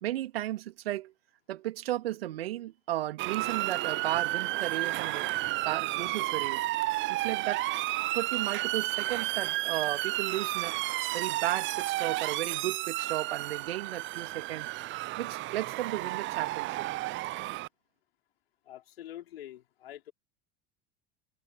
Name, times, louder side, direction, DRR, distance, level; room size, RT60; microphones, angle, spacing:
voice 1, 0.0-1.1 1.5-6.6 7.1-7.6 8.1-10.8 11.1-14.7 15.2-16.9, right 14 dB, 70° right, 2.8 m, -34 dB
Motor vehicle (road) / Siren, 3.2-17.7, right 18 dB, 40° right, 0.7 m, -32 dB
voice 2, 18.7-20.1, left 12 dB, 70° left, 4.5 m, -45 dB
figure-of-eight pair, 75°, 31 cm